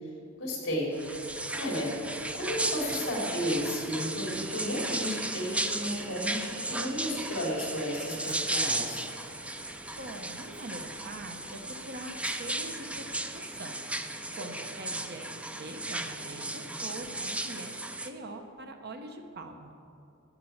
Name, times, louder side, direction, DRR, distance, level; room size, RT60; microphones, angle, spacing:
voice 1, 0.4-0.9 1.6-2.0 2.3-9.0, equal, 60° left, -1 dB, 3.3 m, -33 dB
sound 1, 1.0-18.1, right 2 dB, 5° right, 0.4 m, -35 dB
Train, 1.0-17.1, right 3 dB, 35° right, 1.3 m, -52 dB
voice 2, 10.0-13.8 14.4-15.3 15.6-17.8 18.0-19.7, right 2 dB, 50° right, 5 dB, 0.9 m, -43 dB
12.0 x 7.5 x 7.3 m, 2.8 s
head